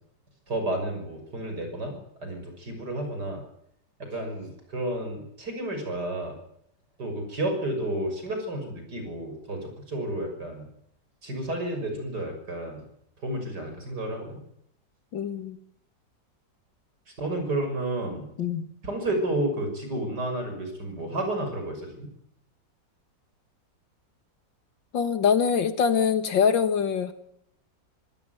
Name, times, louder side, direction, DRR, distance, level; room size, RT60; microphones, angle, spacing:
voice 1, 0.5-2.0 2.2-3.4 4.0-6.4 7.0-10.6 11.2-12.8 13.2-14.4 17.2-18.3 18.8-22.1, right 1 dB, 60° right, 5 dB, 6.7 m, -31 dB
voice 2, 15.1-15.6 18.4-18.7 24.9-27.1, left 7 dB, 80° left, 10 dB, 2.4 m, -24 dB
25.0 x 16.0 x 9.4 m, 0.73 s
omnidirectional pair, 2.0 m